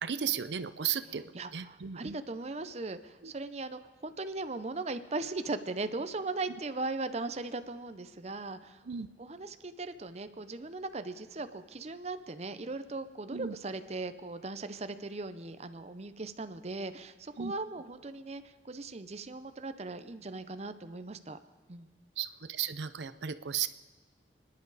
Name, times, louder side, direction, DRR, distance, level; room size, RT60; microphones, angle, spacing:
voice 1, 0.0-2.2 3.2-3.3 8.8-9.1 13.3-13.6 17.4-17.5 22.2-23.7, right 8 dB, 75° right, 13 dB, 0.6 m, -35 dB
voice 2, 1.3-8.8 9.2-21.4 21.7-21.9, right 3 dB, 35° right, 10 dB, 0.7 m, -38 dB
30.0 x 10.5 x 4.1 m, 1.3 s
head